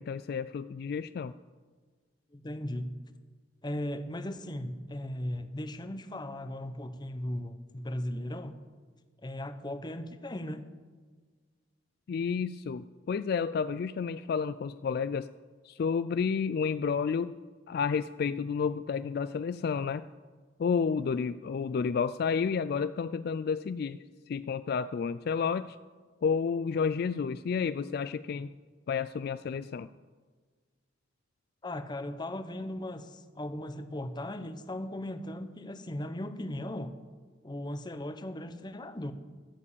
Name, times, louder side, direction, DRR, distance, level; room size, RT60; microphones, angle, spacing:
voice 1, 0.0-1.3 12.1-15.3 15.6-17.3 17.7-20.0 20.6-25.8 26.2-28.5 28.9-29.9, left 6 dB, 55° left, 14 dB, 0.3 m, -31 dB
voice 2, 2.3-3.0 3.6-8.6 9.2-10.6 31.6-36.9 37.4-39.1, left 1 dB, 25° left, 10 dB, 0.8 m, -37 dB
14.0 x 7.4 x 8.5 m, 1.5 s
head